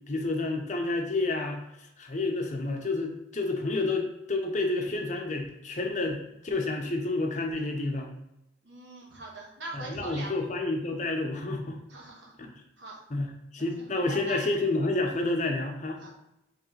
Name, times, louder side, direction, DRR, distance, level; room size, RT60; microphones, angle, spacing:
voice 1, 0.1-8.1 9.7-11.8 12.4-12.5 13.1-16.0, left 2 dB, 40° left, 3 dB, 0.6 m, -30 dB
voice 2, 8.6-10.3 11.9-12.4 12.8-13.0 13.6-14.4 16.0-16.2, right 2 dB, 80° right, -3 dB, 1.3 m, -42 dB
4.7 x 3.2 x 3.2 m, 0.84 s
head